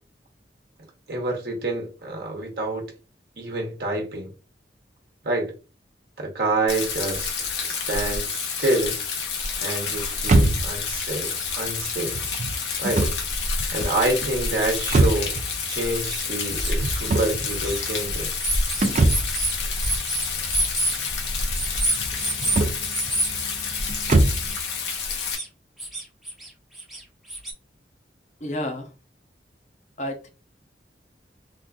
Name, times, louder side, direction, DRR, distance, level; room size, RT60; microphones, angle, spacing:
voice 1, 1.1-2.9 3.4-4.3 5.2-5.5 6.2-7.3 7.6-9.0 9.6-12.3 12.8-13.1 13.7-15.3 15.7-18.3, right 2 dB, 60° right, 1.0 m, -27 dB
Rain, 6.7-25.4, left 4 dB, 80° left, 0.9 m, -29 dB
sound 1, 10.2-24.6, right 2 dB, 40° right, 0.4 m, -26 dB
sound 2, 11.0-11.1 11.4-11.5 12.3-12.4 12.8-12.9 13.4-13.5 14.4-14.5 14.9-15.0 15.7-16.8 17.4-17.8 18.4-21.0 21.5-22.6 22.9-23.3 25.2-25.5 25.8-26.5 26.7-27.5, right 1 dB, ahead, 0.7 m, -28 dB
voice 2, 28.4-28.9 30.0-30.3, left 1 dB, 40° left, 0.7 m, -30 dB
3.8 x 2.5 x 2.3 m
head